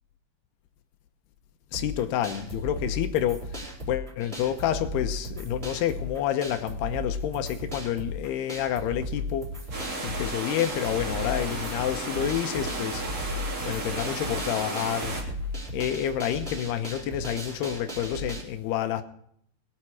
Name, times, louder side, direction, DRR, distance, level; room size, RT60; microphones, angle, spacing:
voice 1, 1.7-9.5 10.0-13.0 13.6-15.2 15.7-19.0, left 11 dB, 80° left, 2.8 m, -29 dB
sound 1, 1.7-18.4, left 1 dB, 15° right, 3.9 m, -36 dB
sound 2, 9.7-15.2, right 2 dB, 40° right, 4.0 m, -34 dB
20.5 x 8.9 x 4.7 m
omnidirectional pair, 4.9 m